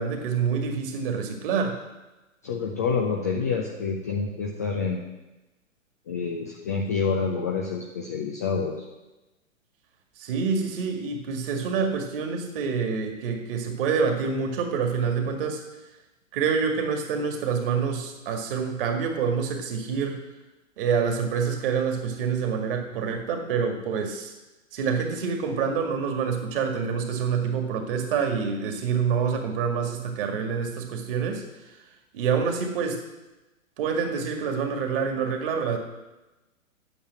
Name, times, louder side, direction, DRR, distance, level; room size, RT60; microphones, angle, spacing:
voice 1, 0.0-1.8 10.2-15.6 16.3-20.2 20.8-24.3 24.7-31.4 32.1-33.0 33.8-35.8, right 6 dB, 40° right, 4 dB, 2.0 m, -27 dB
voice 2, 2.4-5.0 6.1-8.9, left 5 dB, 15° left, 0 dB, 0.3 m, -27 dB
9.0 x 7.0 x 8.6 m, 1.1 s
figure-of-eight pair, 115°, 40 cm